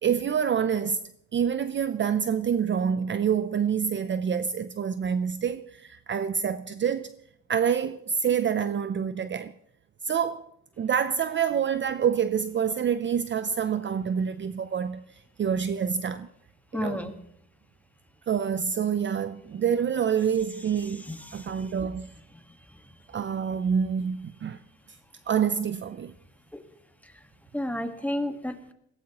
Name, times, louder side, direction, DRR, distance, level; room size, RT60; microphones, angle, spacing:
voice 1, 0.0-1.0 1.3-7.1 7.5-9.5 10.0-10.5 10.8-15.0 15.4-16.3 16.7-17.0 18.3-21.0 21.3-22.1 23.1-24.6 25.3-26.1, right 7 dB, 40° right, 0.6 m, -27 dB
voice 2, 16.7-17.1 20.8-21.5 27.5-28.7, left 1 dB, 5° left, 1.5 m, -32 dB
21.0 x 16.0 x 3.0 m
cardioid pair, 90°, 30 cm